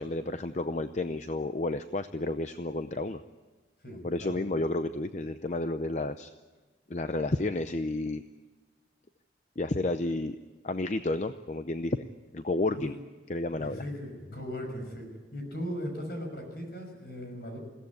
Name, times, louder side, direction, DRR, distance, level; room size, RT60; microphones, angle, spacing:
voice 1, 0.0-3.2 4.0-6.3 6.9-8.2 9.6-10.4 10.6-12.1 12.3-12.9 13.3-13.8, left 2 dB, 40° left, 10 dB, 0.6 m, -31 dB
voice 2, 3.8-4.4 12.7-12.9 13.5-17.6, equal, 55° left, 4 dB, 6.0 m, -38 dB
22.0 x 16.5 x 9.6 m, 1.3 s
head